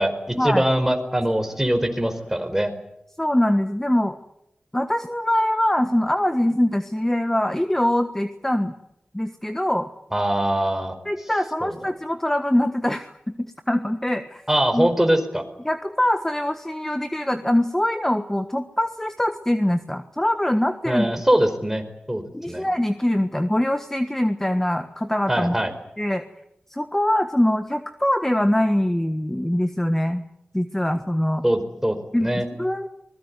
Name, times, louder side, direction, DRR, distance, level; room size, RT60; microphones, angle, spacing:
voice 1, 0.0-2.7 10.1-10.9 11.6-11.7 14.5-15.4 20.8-22.7 25.3-25.7 31.4-32.5, right 1 dB, 10° right, 7 dB, 4.7 m, -22 dB
voice 2, 3.2-4.2 4.7-8.7 9.1-9.9 11.0-14.4 14.7-14.9 15.6-21.1 22.3-25.6 26.0-26.2 26.7-30.2 30.5-31.4 32.1-32.9, left 1 dB, 10° left, 9 dB, 1.4 m, -23 dB
24.5 x 20.5 x 9.6 m, 0.83 s
wide cardioid pair, 60°, 3 cm